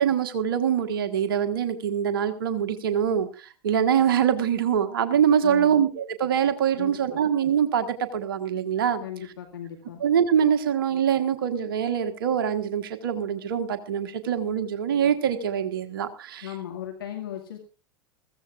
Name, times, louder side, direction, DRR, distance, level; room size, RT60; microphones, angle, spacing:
voice 1, 0.0-9.0 10.0-16.5, right 8 dB, 70° right, 8 dB, 1.4 m, -24 dB
voice 2, 5.4-5.8 6.8-7.2 9.0-10.0 16.4-17.6, left 11 dB, 75° left, 2 dB, 2.1 m, -37 dB
21.5 x 15.0 x 2.5 m, 0.32 s
figure-of-eight pair, 85°, 12 cm